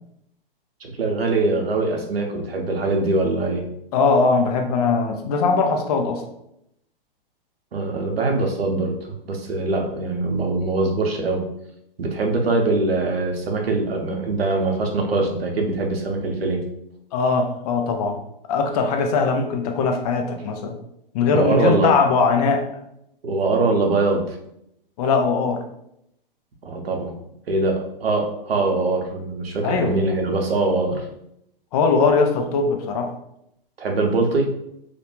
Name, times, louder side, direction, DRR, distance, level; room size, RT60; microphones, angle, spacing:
voice 1, 0.8-3.7 7.7-9.0 9.2-11.5 12.0-16.7 21.3-21.9 23.2-24.4 26.6-27.1 27.5-31.0 33.8-34.5, right 3 dB, 90° right, 2 dB, 0.7 m, -22 dB
voice 2, 3.9-6.2 17.1-18.2 18.5-20.8 21.1-22.6 25.0-25.6 29.6-29.9 31.7-33.1, left 4 dB, 40° left, 4 dB, 0.5 m, -20 dB
2.4 x 2.2 x 2.9 m, 0.78 s
hypercardioid pair, 125°, 29 cm